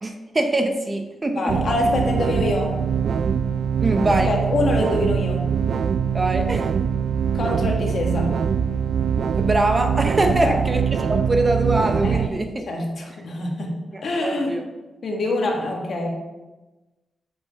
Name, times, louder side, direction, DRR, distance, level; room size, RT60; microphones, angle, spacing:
voice 1, 0.0-1.6 3.8-4.3 6.1-6.7 9.3-12.6 13.9-14.6, right 2 dB, 25° right, 5 dB, 0.7 m, -23 dB
voice 2, 1.3-2.8 4.1-5.5 7.3-8.4 10.2-10.6 12.0-12.4 12.7-14.6 15.0-16.1, left 2 dB, 55° left, 0 dB, 1.7 m, -25 dB
sound 1, 1.5-12.3, right 7 dB, 65° right, 0.3 m, -23 dB
6.7 x 5.3 x 5.7 m, 1.1 s
wide cardioid pair, 145°, 0 cm